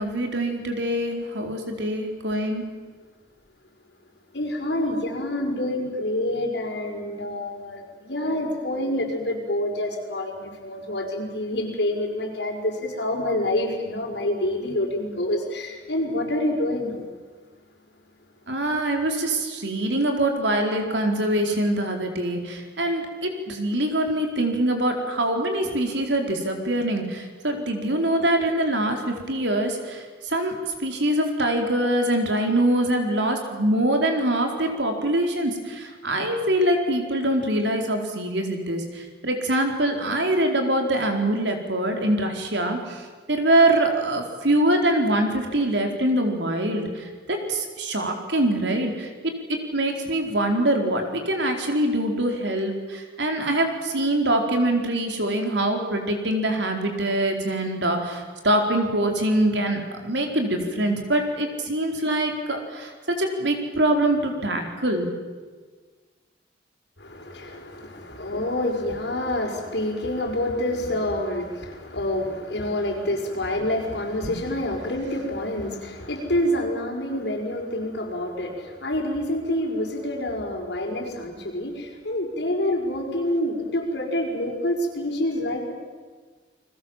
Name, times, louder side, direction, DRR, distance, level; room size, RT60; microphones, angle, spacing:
voice 1, 0.0-2.7 18.5-65.1 74.2-74.3, right 1 dB, 80° right, 4 dB, 4.3 m, -24 dB
voice 2, 4.3-17.0 67.0-85.7, left 1 dB, 70° left, 1 dB, 5.5 m, -27 dB
30.0 x 21.0 x 7.5 m, 1.5 s
head